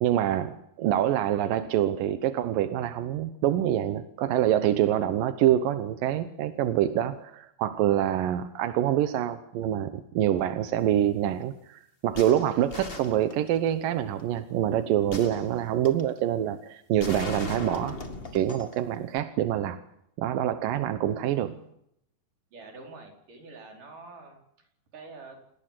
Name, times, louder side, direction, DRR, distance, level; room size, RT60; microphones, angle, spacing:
voice 1, 0.0-18.0 18.3-19.8 20.2-21.6, right 11 dB, 70° right, 10 dB, 2.4 m, -26 dB
sound 1, 12.1-13.7 15.1-16.1 17.0-18.8 19.2-19.3, left 3 dB, 45° left, 0.7 m, -38 dB
voice 2, 22.5-24.4 24.9-25.4, right 3 dB, 50° right, 2 dB, 6.2 m, -46 dB
28.5 x 19.0 x 7.7 m, 0.75 s
omnidirectional pair, 4.8 m